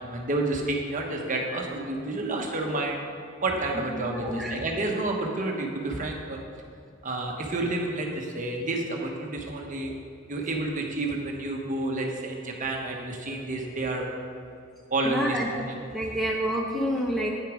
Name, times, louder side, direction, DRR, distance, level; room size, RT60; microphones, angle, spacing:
voice 1, 0.0-3.0 3.4-6.4 7.0-9.9 10.3-14.0 14.9-15.8, right 2 dB, 40° right, 1 dB, 1.1 m, -30 dB
voice 2, 3.9-4.5 15.0-15.5 15.9-17.3, equal, ahead, -1 dB, 0.6 m, -28 dB
9.3 x 6.5 x 4.9 m, 2.3 s
head